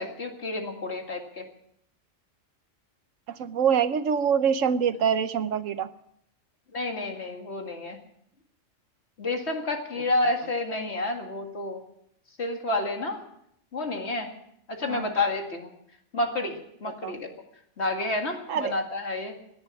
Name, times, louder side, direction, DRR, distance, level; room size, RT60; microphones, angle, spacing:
voice 1, 0.0-1.4 6.7-8.0 9.2-11.8 12.4-13.2 13.7-14.3 14.8-15.7 16.1-16.6 16.8-17.3 17.8-19.4, left 2 dB, 55° left, 3 dB, 2.4 m, -29 dB
voice 2, 3.3-5.9 14.8-15.1 17.0-17.2 18.5-18.7, right 7 dB, 80° right, 12 dB, 1.2 m, -25 dB
17.0 x 10.5 x 7.1 m, 0.72 s
omnidirectional pair, 1.3 m